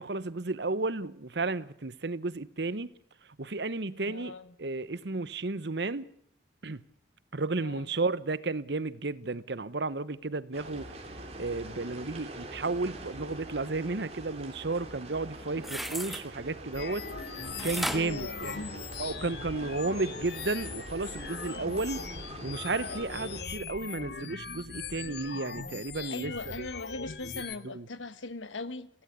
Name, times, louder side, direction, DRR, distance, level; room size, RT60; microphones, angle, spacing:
voice 1, 0.0-2.9 3.2-6.0 6.6-6.8 7.3-10.9 11.4-17.1 17.6-18.6 19.0-22.0 22.4-26.7 27.6-27.9, right 3 dB, 65° right, 0.9 m, -33 dB
voice 2, 4.0-4.5 7.6-7.8 17.8-18.8 26.1-28.9, left 3 dB, 90° left, 1.3 m, -40 dB
sound 1, 10.5-23.4, right 1 dB, 35° right, 3.5 m, -44 dB
sound 2, 15.5-16.2 17.6-19.1 19.6-19.7, equal, ahead, 1.2 m, -36 dB
sound 3, 16.7-27.6, left 6 dB, 55° left, 1.1 m, -40 dB
22.5 x 17.0 x 8.2 m
head